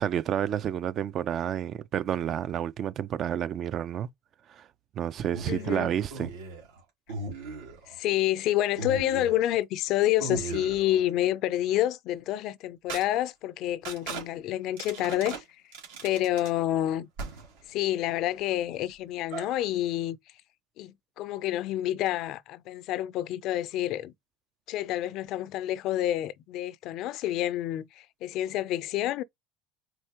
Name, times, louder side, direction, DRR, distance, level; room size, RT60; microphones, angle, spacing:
voice 1, 0.0-4.1 4.5-4.7 4.9-6.3, right 10 dB, 40° right, 0.3 m, -30 dB
sound 1, 5.3-6.8 7.1-8.0 8.8-9.6 10.2-11.0 12.9-13.0 13.8-14.3 14.8-15.4 15.7-16.5 17.2-17.6 19.3-19.5, right 3 dB, 90° right, 2.2 m, -37 dB
voice 2, 5.5-5.9 7.9-15.4 16.0-17.1 17.7-20.2 20.8-24.1 24.7-29.2, left 13 dB, 55° left, 0.4 m, -28 dB
4.5 x 3.7 x 2.8 m
supercardioid pair, 130°, 0 cm